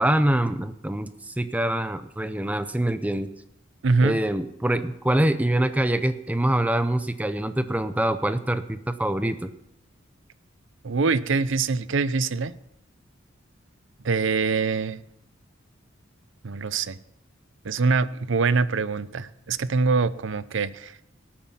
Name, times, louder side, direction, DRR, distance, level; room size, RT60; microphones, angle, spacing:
voice 1, 0.0-3.3 4.0-9.5, right 1 dB, 10° right, 11 dB, 0.6 m, -25 dB
voice 2, 3.8-4.2 10.8-12.5 14.0-15.0 16.4-17.0 17.6-21.0, right 4 dB, 65° right, 16 dB, 0.6 m, -24 dB
18.5 x 8.7 x 5.6 m, 0.78 s
head